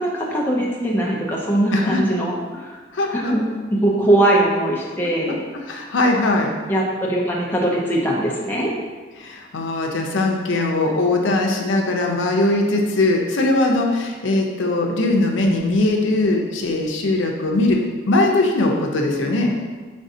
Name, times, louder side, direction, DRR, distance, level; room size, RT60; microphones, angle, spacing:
voice 1, 0.0-2.8 3.1-3.4 3.7-5.4 6.7-8.7, right 1 dB, 10° left, -3 dB, 0.5 m, -21 dB
voice 2, 1.7-2.0 2.9-3.3 5.7-6.5 9.2-17.8 18.1-19.5, left 2 dB, 75° left, 1 dB, 0.6 m, -20 dB
5.2 x 3.4 x 2.7 m, 1.4 s
head